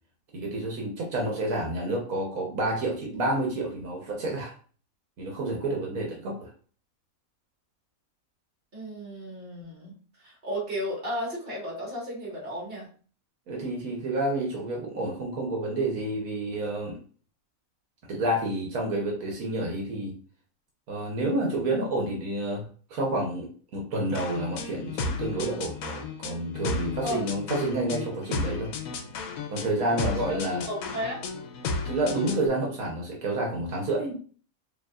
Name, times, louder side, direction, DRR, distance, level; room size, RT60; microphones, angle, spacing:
voice 1, 0.3-4.5 5.2-6.5 13.5-17.0 18.1-20.2 20.9-23.5 23.7-28.7 29.5-30.7 31.8-34.1, right 1 dB, 80° right, -1 dB, 1.4 m, -29 dB
voice 2, 8.7-12.9 27.0-27.2 30.3-30.4 30.7-31.2, equal, 40° right, -3 dB, 1.9 m, -34 dB
sound 1, 24.1-32.5, left 4 dB, 80° left, 1.1 m, -34 dB
4.9 x 3.0 x 2.4 m, 0.42 s
omnidirectional pair, 1.5 m